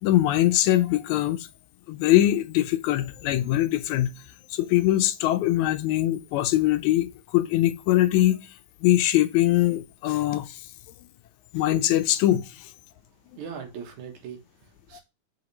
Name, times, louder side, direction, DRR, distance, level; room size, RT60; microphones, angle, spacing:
voice 1, 0.0-1.5 1.9-4.1 4.5-8.4 8.8-10.6 11.5-12.7 14.9-15.0, left 14 dB, 80° left, 1.9 m, -22 dB
voice 2, 13.3-15.0, right 7 dB, 80° right, 2.6 m, -40 dB
5.6 x 4.9 x 4.0 m
omnidirectional pair, 3.4 m